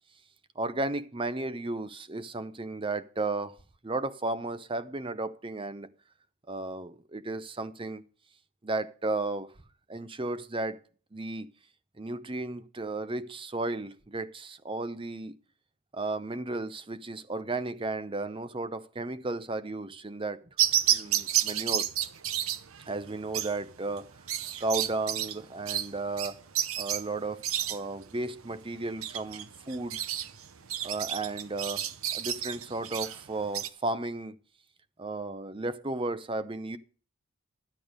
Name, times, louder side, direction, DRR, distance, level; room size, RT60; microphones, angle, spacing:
voice 1, 0.6-3.6 3.8-5.9 6.5-8.0 8.6-9.5 9.9-10.8 11.1-11.5 12.0-15.3 15.9-20.4 20.9-21.9 22.9-24.1 24.6-26.4 26.8-30.0 30.8-31.8 32.1-34.4 35.0-36.8, right 2 dB, 25° right, 0.7 m, -34 dB
sound 1, 20.6-33.7, right 10 dB, 75° right, 0.8 m, -31 dB
12.5 x 8.5 x 5.2 m
head